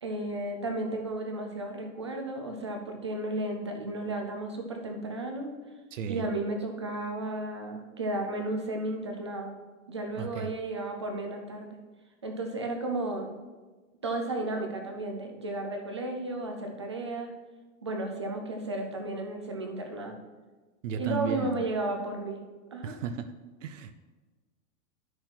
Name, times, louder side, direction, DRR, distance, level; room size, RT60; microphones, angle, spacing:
voice 1, 0.0-5.5 6.1-9.5 9.9-11.8 12.2-13.3 14.0-17.3 17.8-20.2 21.0-22.4 22.7-23.0, right 2 dB, 25° right, 3 dB, 0.4 m, -33 dB
voice 2, 5.9-6.2 10.2-10.5 20.8-21.6 22.8-23.3 23.6-23.9, right 7 dB, 65° right, 10 dB, 0.7 m, -34 dB
10.0 x 6.3 x 4.4 m, 1.3 s
supercardioid pair, 180°, 41 cm